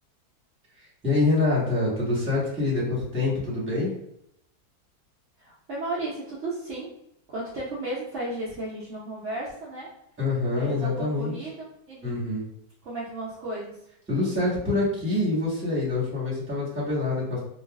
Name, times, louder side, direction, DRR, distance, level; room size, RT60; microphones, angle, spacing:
voice 1, 1.0-3.9 10.2-11.3 12.0-12.4 14.1-17.4, left 2 dB, 10° right, -7 dB, 1.1 m, -25 dB
voice 2, 5.4-6.9 7.3-9.9 10.5-12.1 12.8-13.8, right 2 dB, 60° right, -7 dB, 0.8 m, -34 dB
3.3 x 2.3 x 2.3 m, 0.77 s
omnidirectional pair, 1.7 m